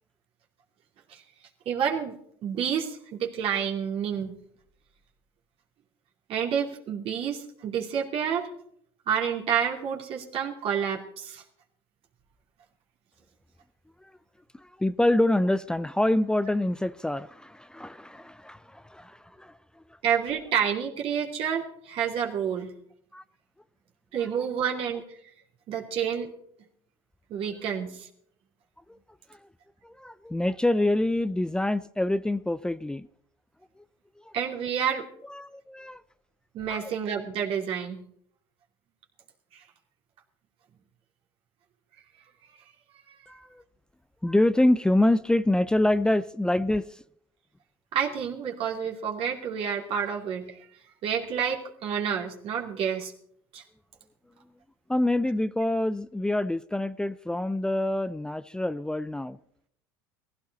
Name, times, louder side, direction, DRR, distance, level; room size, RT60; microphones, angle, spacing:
voice 1, 1.7-2.2 2.4-4.3 6.3-8.5 9.1-11.4 20.0-22.7 24.1-25.0 25.7-26.3 27.3-28.1 34.3-35.1 36.5-38.0 39.5-39.6 43.1-43.2 47.9-50.6 51.0-53.1 53.5-53.6, right 8 dB, 50° right, 2.8 m, -29 dB
voice 2, 14.8-19.5 23.1-23.2 29.8-33.1 35.3-36.0 36.7-36.9 43.3-43.5 44.2-46.9 54.9-59.4, left 1 dB, 5° left, 0.5 m, -26 dB
17.0 x 15.5 x 4.1 m
hypercardioid pair, 85°, 12 cm